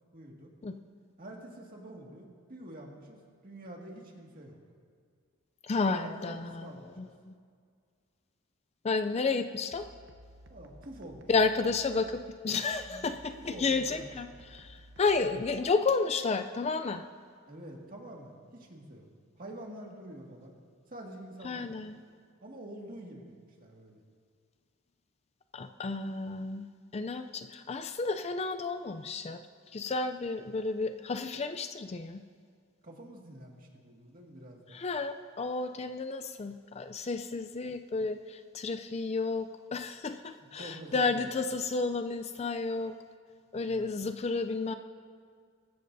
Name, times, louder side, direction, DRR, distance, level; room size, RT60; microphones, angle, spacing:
voice 1, 0.1-0.5 1.2-4.6 5.9-7.1 10.5-11.5 12.9-13.1 13.3-14.2 17.5-19.1 19.4-20.6 20.9-21.8 22.4-24.0 32.8-34.8 40.5-41.4 43.6-43.9, right 1 dB, 40° right, -1 dB, 2.0 m, -47 dB
voice 2, 5.6-6.7 7.0-7.3 8.8-9.9 11.3-17.0 21.4-22.0 25.5-26.7 26.9-29.4 29.7-32.2 34.7-43.0 43.5-44.7, left 4 dB, 30° left, 9 dB, 0.4 m, -31 dB
sound 1, 9.7-15.7, equal, 55° right, 0.9 m, -55 dB
23.0 x 13.5 x 2.7 m, 2.1 s
head